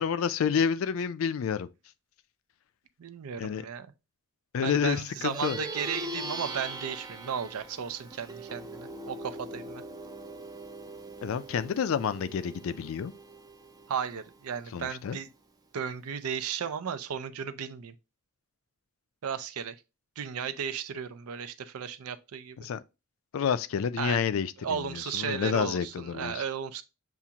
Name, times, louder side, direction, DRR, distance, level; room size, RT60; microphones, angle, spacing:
voice 1, 0.0-1.7 3.4-3.7 4.5-5.6 11.2-13.1 14.7-15.2 22.6-22.8 23.3-26.3, left 7 dB, 65° left, 0.3 m, -29 dB
voice 2, 3.0-3.9 4.6-9.8 13.9-15.3 15.7-17.9 19.2-19.7 20.2-22.6 24.0-24.2 24.6-26.8, right 7 dB, 85° right, 0.5 m, -35 dB
Plucked string instrument, 5.1-14.9, right 2 dB, 15° right, 0.4 m, -41 dB
7.1 x 2.4 x 2.8 m
head